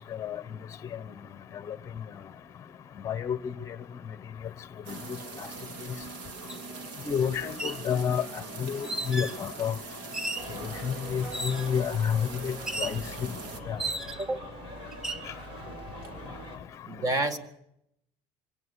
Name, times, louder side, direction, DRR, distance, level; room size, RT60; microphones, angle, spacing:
voice 1, 3.0-3.5 4.9-5.0 5.4-5.5 7.1-8.2 8.6-9.7 10.5-13.3 13.7-13.8, left 7 dB, 25° left, 1.0 m, -29 dB
sound 1, 4.8-13.6, right 4 dB, 70° right, 2.9 m, -42 dB
sound 2, 6.5-6.6 7.4-7.8 8.8-9.4 10.1-10.5 11.3-11.8 12.7-13.0 13.8-14.4 14.9-15.3, right 2 dB, 5° right, 0.8 m, -34 dB
sound 3, 10.3-16.6, right 1 dB, 50° right, 5.5 m, -43 dB
voice 2, 16.9-17.4, right 2 dB, 30° right, 1.9 m, -29 dB
24.5 x 17.5 x 8.3 m
cardioid pair, 160°, 12 cm